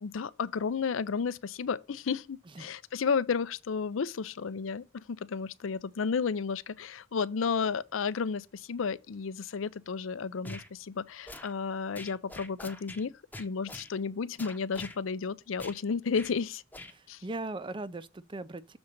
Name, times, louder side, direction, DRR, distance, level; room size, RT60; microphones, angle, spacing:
voice 1, 0.0-13.1 13.4-16.6 17.1-17.2, left 5 dB, 85° left, 0.5 m, -32 dB
sound 1, 10.4-10.7 11.3-11.5 11.9-13.0 13.3-13.9 14.4-15.0 15.6-15.8 16.1-16.3 16.7-16.9, left 1 dB, 10° left, 0.8 m, -44 dB
voice 2, 16.9-18.8, right 2 dB, 25° right, 0.5 m, -39 dB
7.0 x 3.9 x 6.5 m
head